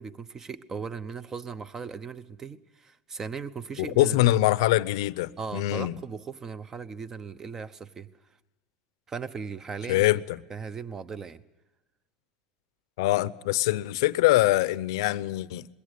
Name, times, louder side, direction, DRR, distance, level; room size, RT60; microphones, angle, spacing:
voice 1, 0.0-4.3 5.4-8.1 9.1-10.1 10.5-11.4, right 5 dB, 20° right, 0.9 m, -38 dB
voice 2, 3.8-5.9 9.9-10.2 13.0-15.7, left 17 dB, 75° left, 0.7 m, -23 dB
21.5 x 17.0 x 8.3 m
supercardioid pair, 130°, 2 cm